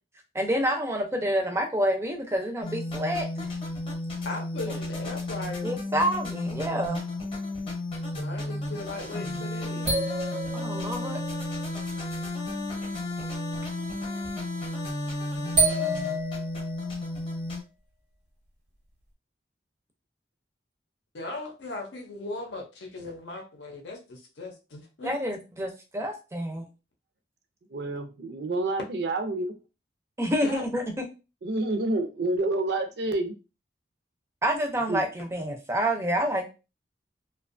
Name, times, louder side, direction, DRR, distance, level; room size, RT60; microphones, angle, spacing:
voice 1, 0.3-3.5 4.7-4.8 5.6-7.1 10.5-11.2 25.0-26.7 30.2-31.0 34.4-36.5, equal, 15° right, 0.4 m, -28 dB
sound 1, 2.6-17.6, left 2 dB, 30° left, 0.7 m, -33 dB
voice 2, 4.2-5.7 8.2-10.1 21.1-25.1 30.4-30.6, left 2 dB, 85° left, 0.6 m, -38 dB
sound 2, 9.9-11.8 14.2-14.3 15.6-17.0, right 1 dB, 90° right, 1.1 m, -28 dB
voice 3, 27.7-29.5 31.4-33.3 34.9-35.0, right 2 dB, 70° right, 0.5 m, -28 dB
2.6 x 2.2 x 2.4 m
head